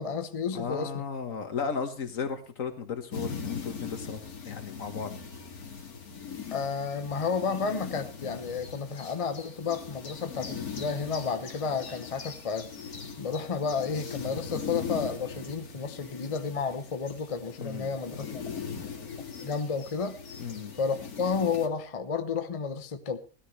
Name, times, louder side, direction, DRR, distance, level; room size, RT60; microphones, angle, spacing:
voice 1, 0.0-1.0 6.5-12.7 13.2-18.4 18.7-18.8 19.4-20.2 20.8-23.2, left 5 dB, 30° left, 0.8 m, -31 dB
voice 2, 0.5-5.1 17.6-17.9 20.4-20.7, left 6 dB, 65° left, 1.8 m, -35 dB
sound 1, 3.1-21.7, left 6 dB, 90° left, 2.2 m, -40 dB
17.0 x 13.0 x 3.2 m
omnidirectional pair, 1.5 m